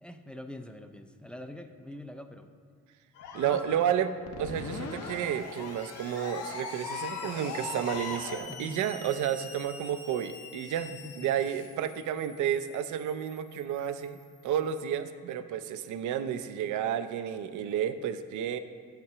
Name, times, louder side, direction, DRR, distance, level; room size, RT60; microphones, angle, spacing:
voice 1, 0.0-2.5 3.4-3.9 8.5-8.8 10.9-11.3, left 1 dB, 5° left, 7 dB, 0.4 m, -44 dB
sound 1, 3.2-8.4, left 4 dB, 80° left, 0.9 m, -40 dB
voice 2, 3.3-4.1 4.4-10.9 11.2-18.6, right 9 dB, 75° right, 11 dB, 0.5 m, -31 dB
Screech, 4.3-14.7, left 4 dB, 55° left, 1.0 m, -45 dB
5.9 x 5.8 x 6.6 m, 2.1 s
cardioid pair, 90°, 30 cm